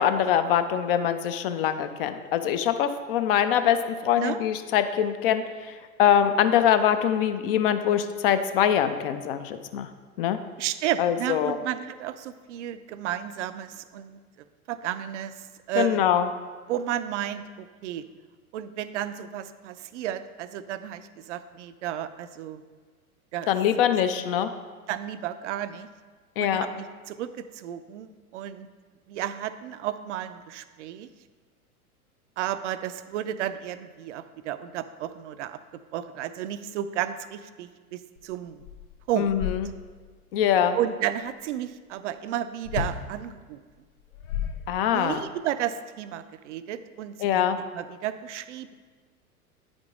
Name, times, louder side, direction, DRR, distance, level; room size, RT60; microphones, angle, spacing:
voice 1, 0.0-9.9 10.2-10.4 11.0-11.6 15.8-16.3 23.5-24.5 26.4-26.7 39.2-39.7 40.3-40.8 44.7-45.2 47.2-47.6, left 9 dB, 40° left, 10 dB, 0.5 m, -23 dB
voice 2, 10.6-14.2 14.7-16.0 16.7-18.1 18.5-22.6 23.3-23.5 24.9-25.9 26.4-28.7 29.1-31.1 32.4-38.6 39.1-39.4 40.7-43.6 44.9-47.5 47.7-48.7, right 11 dB, 55° right, 12 dB, 0.5 m, -32 dB
sound 1, 38.2-38.3 38.6-40.1 42.6-43.1 43.9-45.2, left 7 dB, 70° left, 0.9 m, -33 dB
9.0 x 5.1 x 3.6 m, 1.5 s
figure-of-eight pair, 90°, 44 cm